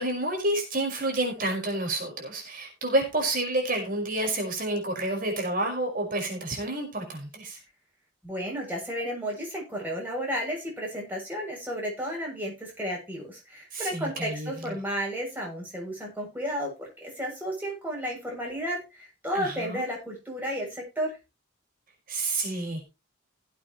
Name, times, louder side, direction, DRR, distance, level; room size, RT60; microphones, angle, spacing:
voice 1, 0.0-7.6 13.7-14.5 19.3-19.8 22.1-22.8, right 1 dB, 45° right, 2 dB, 5.2 m, -29 dB
voice 2, 8.2-21.2, equal, 10° right, -2 dB, 7.4 m, -33 dB
17.5 x 8.7 x 3.1 m, 0.27 s
head